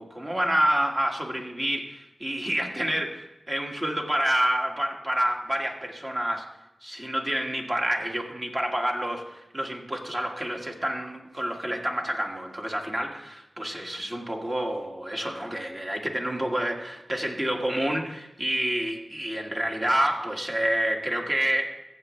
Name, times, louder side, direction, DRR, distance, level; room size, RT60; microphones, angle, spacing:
voice 1, 0.0-6.5 6.8-21.7, right 1 dB, 30° right, 1 dB, 1.9 m, -28 dB
14.5 x 8.0 x 3.3 m, 0.94 s
cardioid pair, 45°, 0 cm